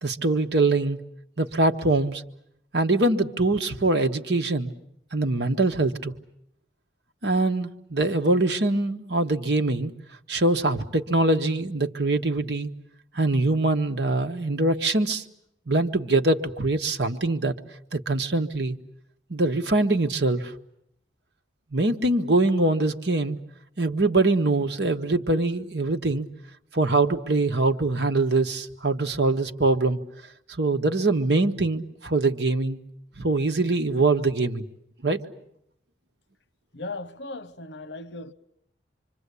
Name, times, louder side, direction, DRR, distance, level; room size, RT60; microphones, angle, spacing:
voice 1, 0.0-1.0 1.4-2.2 2.7-4.7 5.1-6.1 7.2-9.9 10.3-12.7 13.1-15.2 15.7-17.5 17.9-18.8 19.3-20.5 21.7-23.4 23.8-26.3 26.7-30.0 30.6-32.8 33.2-34.6 35.0-35.2, right 2 dB, 70° right, 1.4 m, -23 dB
voice 2, 36.7-38.3, left 2 dB, 80° left, 1.0 m, -37 dB
26.5 x 24.5 x 8.4 m
head